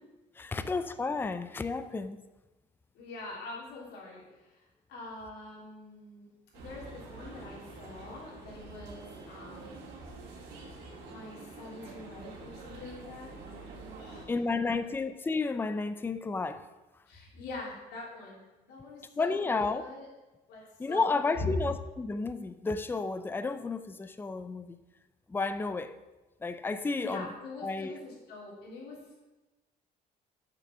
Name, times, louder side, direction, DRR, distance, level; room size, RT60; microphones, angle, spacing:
voice 1, 0.4-2.2 14.3-16.7 19.2-19.8 20.8-24.8 25.3-25.9 26.4-27.3 27.6-27.9, left 4 dB, 10° left, 12 dB, 0.5 m, -32 dB
voice 2, 2.9-6.3 6.5-9.7 10.9-13.4 14.0-14.3 17.1-20.1 20.5-21.6 27.0-29.2, left 2 dB, 80° left, -3 dB, 3.1 m, -43 dB
sound 1, 6.5-14.2, right 3 dB, 85° right, 2.1 m, -47 dB
6.9 x 5.8 x 7.2 m, 1.1 s
cardioid pair, 110°, 17 cm